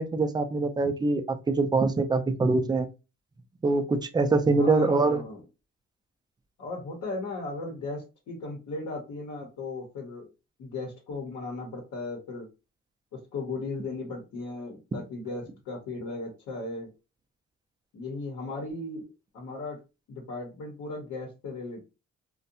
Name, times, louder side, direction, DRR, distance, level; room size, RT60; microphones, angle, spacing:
voice 1, 0.0-2.9 3.6-5.2, right 3 dB, 15° right, 8 dB, 0.3 m, -24 dB
voice 2, 4.6-5.4 6.6-10.3 10.6-12.5 13.1-16.9 17.9-19.0 19.3-19.8 20.1-21.8, left 3 dB, 75° left, -1 dB, 0.8 m, -36 dB
2.6 x 2.1 x 2.6 m, 0.29 s
cardioid pair, 90°, 30 cm